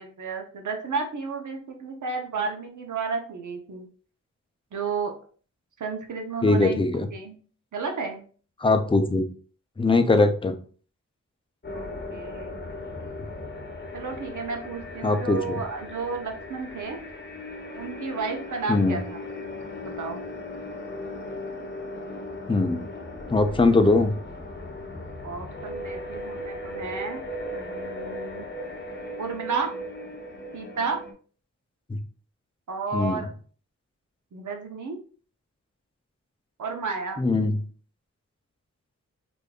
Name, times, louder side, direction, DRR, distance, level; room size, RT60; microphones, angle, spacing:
voice 1, 0.0-3.9 4.7-5.1 5.8-6.8 7.1-7.4 7.7-8.2 11.7-12.7 13.9-17.0 17.7-19.2 19.8-20.2 25.2-27.2 27.5-28.5 29.2-29.7 30.5-31.0 32.7-33.3 34.3-35.0 36.6-37.2, right 4 dB, 85° right, 3 dB, 0.8 m, -32 dB
voice 2, 6.4-7.1 8.6-9.2 9.8-10.6 15.0-15.6 18.7-19.0 22.5-22.9 23.3-24.1 31.9-32.0 32.9-33.2 37.2-37.6, left 3 dB, 20° left, 7 dB, 0.4 m, -21 dB
sound 1, 11.6-31.1, left 1 dB, 35° left, 0.8 m, -37 dB
5.0 x 2.6 x 2.3 m, 0.42 s
wide cardioid pair, 100°, 29 cm